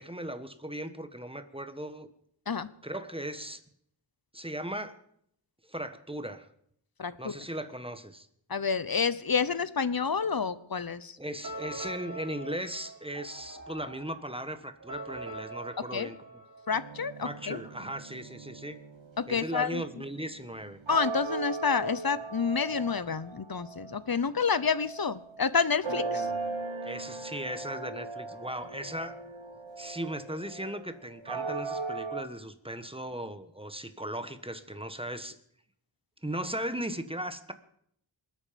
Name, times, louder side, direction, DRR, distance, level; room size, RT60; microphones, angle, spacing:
voice 1, 0.0-2.1 2.8-3.6 4.3-5.0 5.7-6.5 7.2-8.3 11.2-16.4 17.2-18.8 19.3-20.8 25.9-26.6 26.8-29.2 29.8-35.4 36.2-37.5, right 1 dB, 10° right, 9 dB, 1.3 m, -37 dB
voice 2, 7.0-7.3 8.5-11.2 15.9-16.1 16.7-17.6 19.2-19.8 20.9-26.3, left 5 dB, 50° left, 16 dB, 0.9 m, -29 dB
sound 1, 11.4-17.2, right 1 dB, 40° right, 6.4 m, -43 dB
sound 2, 16.7-24.0 24.5-25.5 25.8-32.2, right 3 dB, 75° right, 1.4 m, -38 dB
26.5 x 8.9 x 5.2 m, 0.69 s
wide cardioid pair, 45°, 47 cm